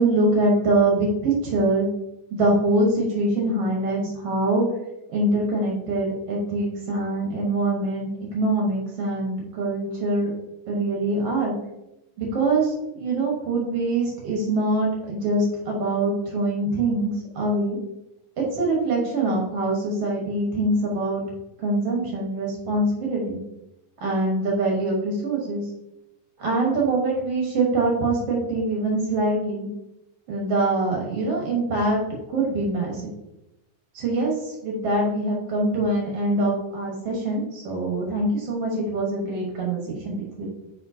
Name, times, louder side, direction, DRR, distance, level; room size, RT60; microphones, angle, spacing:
voice 1, 0.0-1.9 2.3-4.6 5.1-10.3 10.7-11.5 12.2-17.8 18.4-21.2 21.6-23.4 24.0-25.6 26.4-29.7 30.3-32.0 32.3-33.0 33.9-40.5, right 2 dB, 60° right, -2 dB, 1.7 m, -24 dB
8.8 x 4.8 x 2.8 m, 0.90 s
omnidirectional pair, 4.2 m